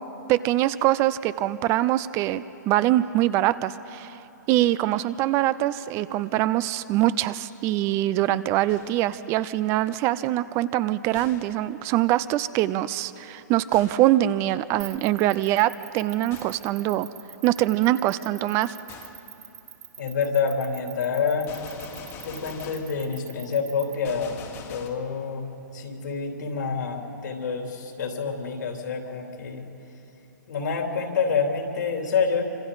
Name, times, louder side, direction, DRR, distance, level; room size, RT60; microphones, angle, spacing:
voice 1, 0.3-4.2 4.5-17.1 17.4-18.7, right 14 dB, 25° right, 16 dB, 0.4 m, -23 dB
Gunshot gunfire, 8.7-9.2 11.1-11.7 13.7-14.2 16.3-16.7 18.9-19.3 21.5-23.0 24.0-24.9, left 6 dB, 25° left, 1.4 m, -44 dB
sound 1, 14.8-23.9, right 11 dB, 55° right, 1.8 m, -43 dB
voice 2, 20.0-21.5 22.2-24.4 24.7-25.5 25.7-29.7 30.5-32.4, left 5 dB, 75° left, 2 dB, 3.3 m, -27 dB
26.0 x 25.5 x 4.0 m, 3.0 s
hypercardioid pair, 135°, 10 cm